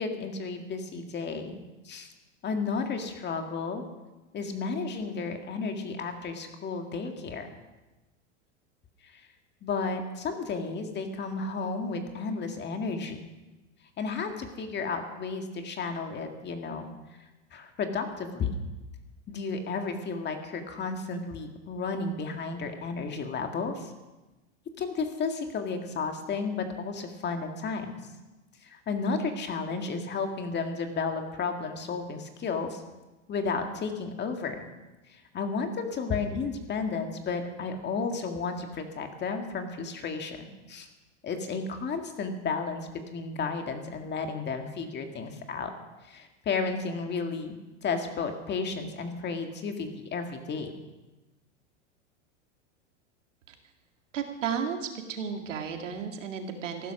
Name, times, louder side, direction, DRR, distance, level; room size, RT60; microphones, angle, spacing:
voice 1, 0.0-1.6 1.8-2.1 2.4-3.8 4.3-7.5 9.0-9.2 9.6-13.3 14.0-16.9 17.5-18.5 19.3-23.9 24.8-27.9 28.6-32.8 33.3-34.7 35.1-40.9 41.2-45.7 46.1-47.5 47.8-50.7, left 4 dB, 30° left, 5 dB, 2.0 m, -33 dB
voice 2, 54.1-56.9, right 7 dB, 90° right, 4 dB, 2.1 m, -33 dB
15.0 x 11.5 x 6.0 m, 1.1 s
hypercardioid pair, 115°, 36 cm